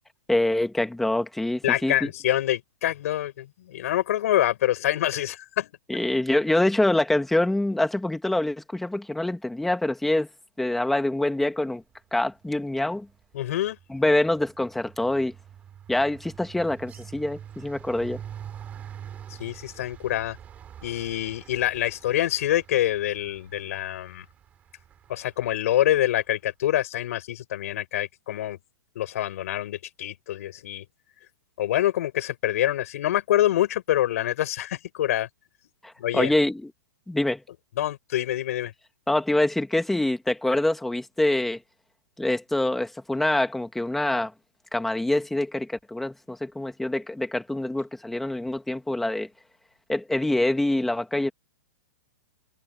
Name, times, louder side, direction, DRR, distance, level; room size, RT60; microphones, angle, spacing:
voice 1, 0.3-2.1 5.9-10.3 10.6-11.8 12.1-13.1 13.9-15.3 15.9-18.2 35.8-36.7 37.1-37.4 39.1-41.6 42.2-44.3 44.7-49.3 49.9-51.3, left 1 dB, ahead, 1.8 m, -25 dB
voice 2, 1.6-5.7 13.3-13.8 19.4-20.4 20.8-24.3 25.1-28.6 29.0-30.8 31.6-35.3 36.0-36.3 37.8-38.7, left 13 dB, 55° left, 5.1 m, -26 dB
sound 1, 12.3-12.6 12.9-26.0, right 9 dB, 15° right, 6.9 m, -45 dB
hypercardioid pair, 170°, 10 cm